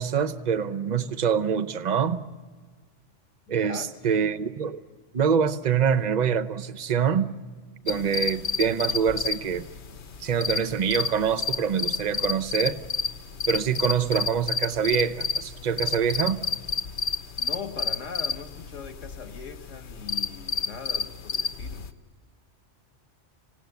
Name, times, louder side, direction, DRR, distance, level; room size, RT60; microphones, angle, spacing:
voice 1, 0.0-2.2 3.5-4.8 5.1-7.3 7.8-9.7 10.2-12.8 13.5-16.4, right 7 dB, 40° right, 12 dB, 0.9 m, -25 dB
voice 2, 3.5-4.4 17.4-21.9, left 5 dB, 90° left, 7 dB, 2.0 m, -40 dB
sound 1, 7.9-21.9, left 5 dB, 65° left, 1.2 m, -30 dB
26.5 x 17.0 x 9.3 m, 1.5 s
omnidirectional pair, 1.2 m